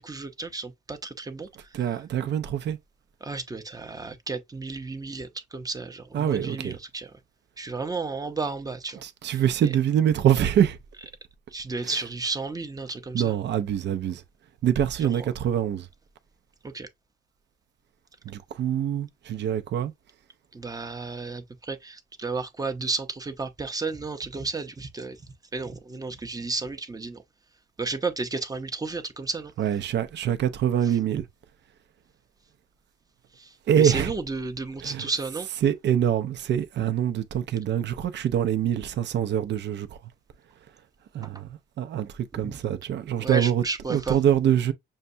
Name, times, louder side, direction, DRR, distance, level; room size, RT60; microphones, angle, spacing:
voice 1, 0.0-1.5 3.2-7.1 7.6-9.0 11.5-13.3 16.6-16.9 20.5-25.2 25.5-27.2 27.8-29.5 33.4-33.5 33.8-35.5 42.4-42.6 43.2-44.2, right 3 dB, 20° right, 0.7 m, -32 dB
voice 2, 1.7-2.8 6.1-6.8 9.0-10.8 11.8-12.1 13.1-14.2 14.6-15.9 18.2-19.9 29.6-31.3 33.7-34.1 34.8-35.1 35.6-40.1 41.1-43.6 43.9-44.7, right 9 dB, 60° right, 0.6 m, -25 dB
6.5 x 2.2 x 2.7 m
cardioid pair, 90°, 20 cm